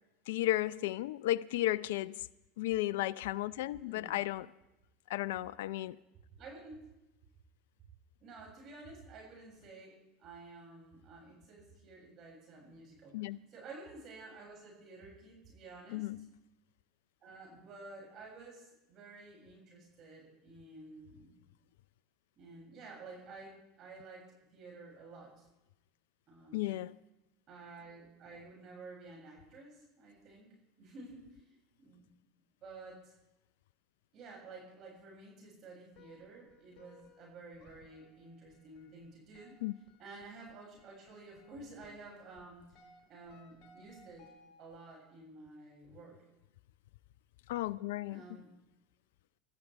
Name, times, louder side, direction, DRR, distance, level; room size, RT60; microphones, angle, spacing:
voice 1, 0.3-2.2 2.6-4.5 5.1-6.0 13.1-13.4 15.9-16.3 26.5-27.0 39.6-39.7 47.5-48.2, left 15 dB, 75° left, 0.4 m, -34 dB
voice 2, 3.8-4.2 6.3-6.9 8.2-16.1 17.2-21.3 22.4-25.5 26.3-26.7 27.5-32.1 32.6-33.1 34.1-39.6 40.0-42.7 43.1-44.3 44.6-46.2 48.1-48.6, right 3 dB, 45° right, 7.2 m, -52 dB
sound 1, 35.9-44.9, left 3 dB, 50° left, 3.6 m, -63 dB
26.5 x 13.5 x 3.5 m
hypercardioid pair, 85°, 0 cm